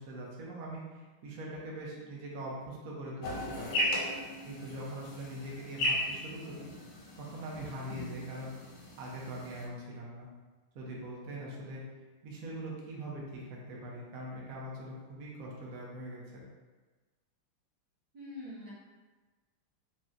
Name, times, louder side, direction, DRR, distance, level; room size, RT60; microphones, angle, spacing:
voice 1, 0.0-3.7 4.4-6.6 7.2-8.5 9.0-10.3 10.7-11.8 12.2-16.4, right 1 dB, 75° right, -4 dB, 0.7 m, -42 dB
sound 1, 3.2-9.7, left 1 dB, 85° left, 1.7 m, -36 dB
voice 2, 18.1-18.8, left 1 dB, 50° right, -10 dB, 1.4 m, -44 dB
4.1 x 2.1 x 2.4 m, 1.3 s
omnidirectional pair, 2.4 m